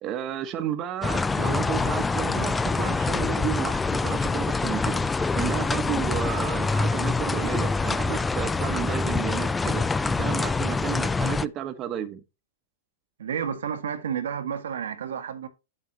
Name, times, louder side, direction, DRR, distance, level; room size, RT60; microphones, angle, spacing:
voice 1, 0.0-12.2, right 10 dB, 35° right, 1.2 m, -32 dB
sound 1, 1.0-11.5, left 3 dB, 10° left, 0.4 m, -25 dB
voice 2, 13.2-15.5, right 7 dB, 85° right, 1.7 m, -31 dB
8.7 x 7.5 x 2.9 m
hypercardioid pair, 130°, 0 cm